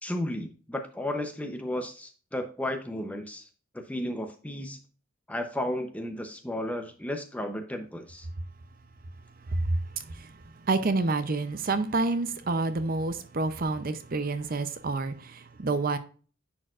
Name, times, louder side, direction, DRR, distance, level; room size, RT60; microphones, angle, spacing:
voice 1, 0.0-3.4 3.9-4.8 5.3-8.3, left 1 dB, 5° left, 0.6 m, -33 dB
voice 2, 9.4-16.0, right 3 dB, 40° right, 0.5 m, -29 dB
10.0 x 4.5 x 2.4 m
head